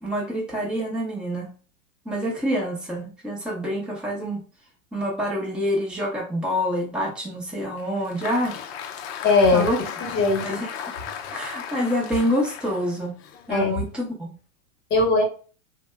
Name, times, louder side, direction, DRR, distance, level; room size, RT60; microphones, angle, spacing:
voice 1, 0.0-1.5 2.1-4.4 4.9-8.6 9.5-10.1 10.4-10.7 11.3-13.1 13.5-14.3, equal, ahead, -3 dB, 0.7 m, -27 dB
Applause, 7.8-14.1, left 8 dB, 50° left, 0.6 m, -36 dB
voice 2, 9.2-9.7 10.0-10.6 13.5-13.8 14.9-15.2, left 3 dB, 25° left, 2 dB, 1.0 m, -20 dB
2.7 x 2.2 x 3.3 m, 0.37 s
hypercardioid pair, 135°, 41 cm